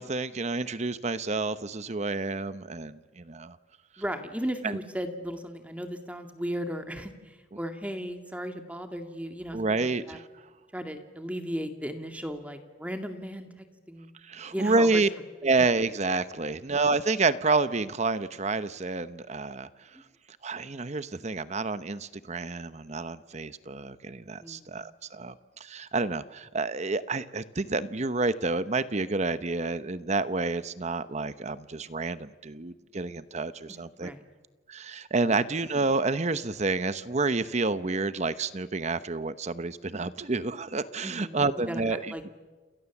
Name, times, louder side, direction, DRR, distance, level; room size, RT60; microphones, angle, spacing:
voice 1, 0.0-3.6 4.6-4.8 9.5-10.3 14.2-15.1 15.4-19.7 20.4-34.1 34.7-42.1, right 3 dB, 35° right, 14 dB, 0.9 m, -29 dB
voice 2, 4.0-10.2 10.7-14.1 14.5-15.0 24.4-24.9 33.7-34.2 41.0-42.3, equal, 5° right, 6 dB, 2.1 m, -36 dB
29.5 x 28.0 x 7.2 m, 1.3 s
head